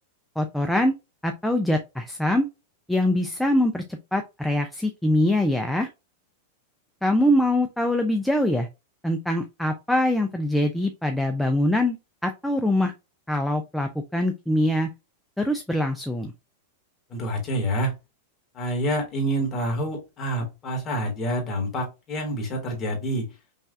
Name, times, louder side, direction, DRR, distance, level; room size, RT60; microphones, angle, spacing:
voice 1, 0.4-1.0 1.2-2.5 2.9-5.9 7.0-8.7 9.0-12.0 12.2-12.9 13.3-14.9 15.4-16.3, left 1 dB, ahead, 4 dB, 0.3 m, -23 dB
voice 2, 17.1-17.9 18.5-23.3, right 1 dB, 20° left, 0 dB, 1.3 m, -27 dB
5.5 x 2.3 x 2.6 m, 0.25 s
supercardioid pair, 180°, 0 cm